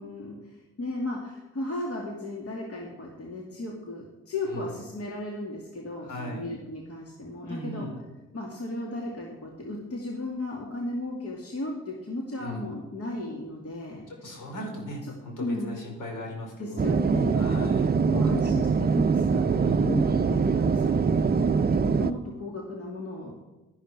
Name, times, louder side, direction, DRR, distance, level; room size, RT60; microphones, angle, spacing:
voice 1, 0.0-7.9 8.3-14.0 15.4-15.7 16.6-23.3, left 1 dB, 40° left, -1 dB, 2.5 m, -35 dB
voice 2, 6.0-6.5 7.4-8.0 12.4-12.7 14.1-16.8 17.3-18.0 19.6-20.2, equal, 60° left, 0 dB, 4.4 m, -38 dB
sound 1, 16.8-22.1, right 5 dB, 25° right, 0.7 m, -23 dB
12.0 x 11.0 x 4.7 m, 1.1 s
hypercardioid pair, 45°, 35 cm